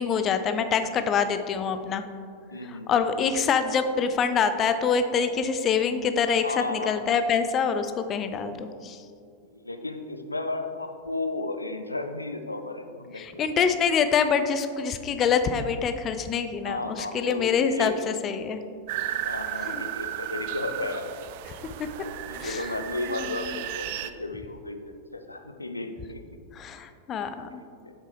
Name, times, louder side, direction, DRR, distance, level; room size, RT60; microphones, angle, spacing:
voice 1, 0.0-2.0 2.6-9.0 13.2-18.6 19.6-19.8 21.8-21.9 22.4-22.7 23.1-23.6 26.5-27.6, left 6 dB, 30° left, 9 dB, 0.4 m, -26 dB
voice 2, 2.4-2.9 6.4-7.0 9.4-13.5 16.6-18.1 18.5-18.6 19.2-21.1 22.2-26.2 27.5-27.9, left 2 dB, 85° left, 7 dB, 0.5 m, -34 dB
sound 1, 18.9-24.1, right 12 dB, 50° right, 0.3 m, -34 dB
7.4 x 6.5 x 3.3 m, 2.3 s
figure-of-eight pair, 90°, 0 cm